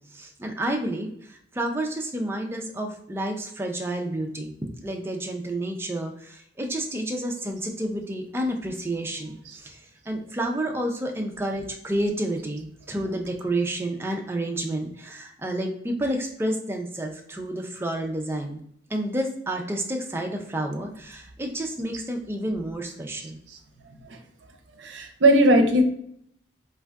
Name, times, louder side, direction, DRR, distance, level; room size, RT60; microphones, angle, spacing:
voice 1, 0.1-18.6 18.9-23.4, right 1 dB, 15° right, 2 dB, 0.3 m, -30 dB
voice 2, 24.8-25.8, right 1 dB, 75° right, 5 dB, 0.5 m, -18 dB
3.3 x 2.5 x 2.3 m, 0.68 s
head